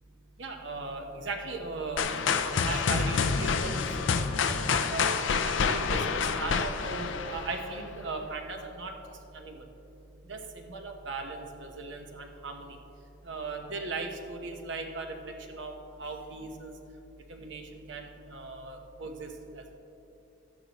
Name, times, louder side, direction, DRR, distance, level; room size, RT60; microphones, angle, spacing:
voice 1, 0.4-4.0 4.4-8.9 9.3-9.6 10.3-12.8 13.3-16.7 17.3-19.3, right 3 dB, 70° right, 3 dB, 1.1 m, -38 dB
sound 1, 2.0-7.9, left 5 dB, 75° left, 0.5 m, -28 dB
13.5 x 10.0 x 3.0 m, 2.8 s
head